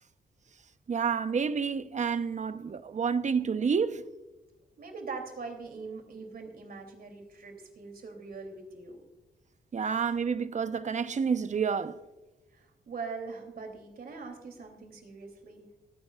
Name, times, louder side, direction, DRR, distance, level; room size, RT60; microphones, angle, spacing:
voice 1, 0.9-4.0 9.7-12.0, right 6 dB, 45° right, 0.8 m, -29 dB
voice 2, 4.8-9.0 12.5-15.7, right 4 dB, 65° right, 3.0 m, -42 dB
27.0 x 9.6 x 2.4 m
cardioid pair, 55°, 17 cm